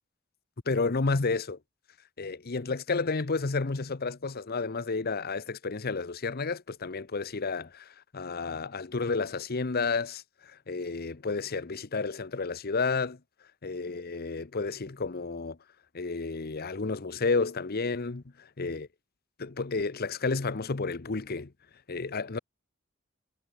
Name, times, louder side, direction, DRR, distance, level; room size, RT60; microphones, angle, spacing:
voice 1, 0.7-1.6 2.2-13.2 13.6-15.6 15.9-18.9 19.4-21.5 21.9-22.4, left 4 dB, 45° left, 0.9 m, -31 dB
head